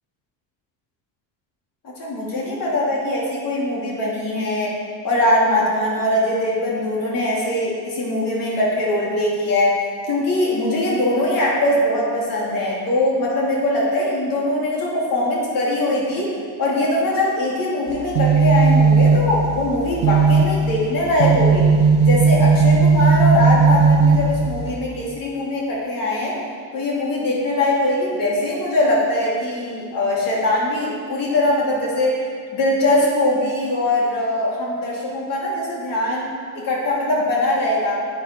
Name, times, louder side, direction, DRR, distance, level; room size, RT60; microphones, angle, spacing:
voice 1, 2.0-4.7 5.0-9.8 10.1-21.7 22.0-26.4 26.7-32.2 32.5-38.0, left 1 dB, 55° left, -4 dB, 3.3 m, -21 dB
sound 1, 17.9-24.8, right 4 dB, 70° right, 1.0 m, -16 dB
12.5 x 8.9 x 4.7 m, 2.1 s
cardioid pair, 140°, 40 cm